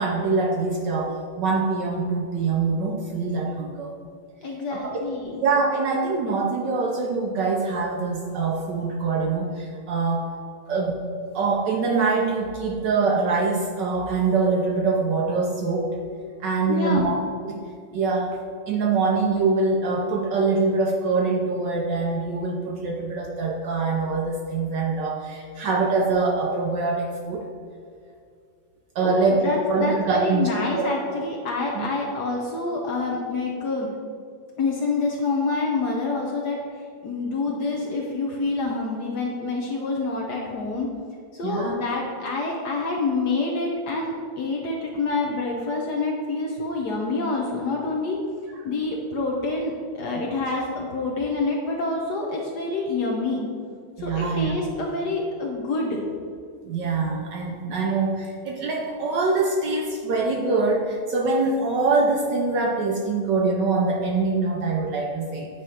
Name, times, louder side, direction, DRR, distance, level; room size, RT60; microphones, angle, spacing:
voice 1, 0.0-3.9 4.8-5.0 5.4-10.3 10.7-11.0 11.3-15.9 16.4-17.6 17.9-18.4 18.7-27.4 28.9-29.4 29.7-30.9 31.7-31.9 41.4-41.8 54.0-54.6 56.6-65.5, right 3 dB, 70° right, 0 dB, 1.1 m, -24 dB
voice 2, 4.4-5.4 16.7-17.1 29.0-33.9 34.6-40.9 41.3-48.2 48.6-53.4 54.0-56.0, left 3 dB, 60° left, -1 dB, 1.1 m, -27 dB
9.1 x 3.2 x 5.5 m, 2.2 s
omnidirectional pair, 2.4 m